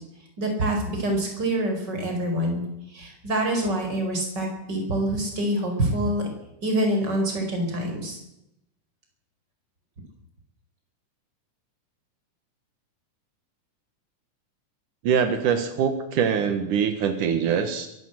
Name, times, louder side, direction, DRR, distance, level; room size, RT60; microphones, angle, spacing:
voice 1, 0.4-2.6 2.9-6.3 6.6-8.2, right 1 dB, 30° right, 2 dB, 5.5 m, -26 dB
voice 2, 15.0-17.9, right 7 dB, 85° right, 8 dB, 3.1 m, -23 dB
23.0 x 14.5 x 8.0 m, 0.85 s
omnidirectional pair, 3.6 m